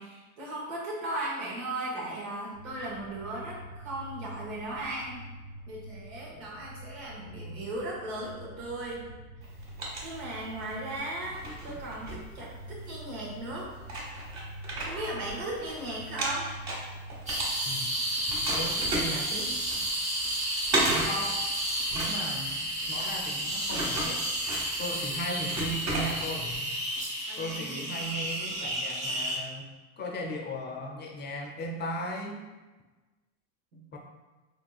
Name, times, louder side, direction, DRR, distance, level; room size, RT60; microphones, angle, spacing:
voice 1, 0.0-5.3 5.7-9.1 10.0-13.7 14.8-16.5 27.3-28.0 33.7-33.8, right 1 dB, 85° right, -4 dB, 1.1 m, -37 dB
sound 1, 2.5-19.3, right 1 dB, 60° right, 0.8 m, -46 dB
sound 2, 9.4-10.7 11.2-12.9 13.5-13.6 13.8-15.7 16.0-18.0 18.3-26.6, right 1 dB, 40° right, 1.3 m, -34 dB
sound 3, 17.3-29.4, right 1 dB, 15° right, 0.7 m, -32 dB
voice 2, 17.6-18.0 18.4-19.6 21.0-21.4 21.9-24.2 24.8-26.7 27.4-29.7 30.0-32.4 33.9-34.0, equal, 25° left, 1 dB, 0.5 m, -37 dB
3.6 x 2.7 x 2.3 m, 1.2 s
supercardioid pair, 100°, 40 cm